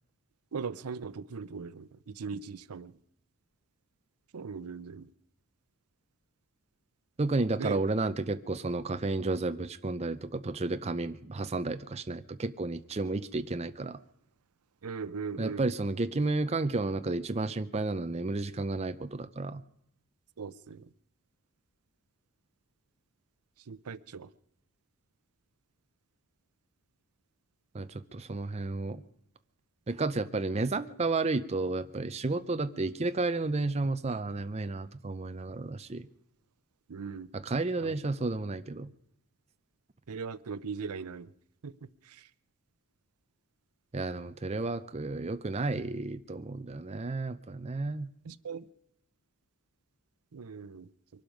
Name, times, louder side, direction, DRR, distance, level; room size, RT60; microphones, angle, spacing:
voice 1, 0.5-2.9 4.3-5.1 7.6-7.8 14.8-15.6 20.4-20.9 23.7-24.3 36.9-37.3 37.8-37.9 40.1-41.3 41.6-41.7 42.1-42.3 48.2-48.7 50.3-50.9, right 5 dB, 85° right, 17 dB, 0.6 m, -39 dB
voice 2, 7.2-14.0 15.4-19.6 27.7-29.0 29.9-36.1 37.3-38.9 43.9-48.1, right 3 dB, 30° right, 10 dB, 0.5 m, -32 dB
23.5 x 12.0 x 5.2 m, 0.75 s
head